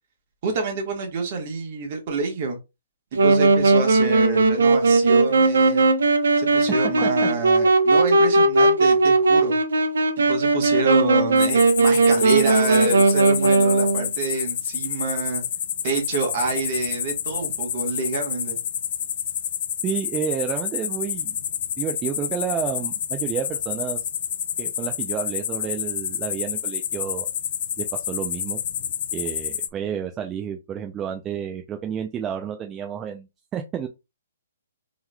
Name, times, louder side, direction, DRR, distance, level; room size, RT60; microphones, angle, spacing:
voice 1, 0.4-2.6 3.1-5.8 6.4-9.5 10.3-15.4 15.8-18.6, right 4 dB, 45° right, 3 dB, 1.3 m, -27 dB
Wind instrument woodwind instrument, 3.1-14.1, right 3 dB, 85° right, 0.7 m, -18 dB
sound 1, 11.4-29.7, left 9 dB, 50° left, 0.4 m, -29 dB
voice 2, 19.8-21.4 21.8-24.1 24.6-27.3 27.8-28.6 29.1-33.9, right 8 dB, 15° right, 4 dB, 0.4 m, -30 dB
3.7 x 3.0 x 2.2 m, 0.25 s
hypercardioid pair, 150°, 0 cm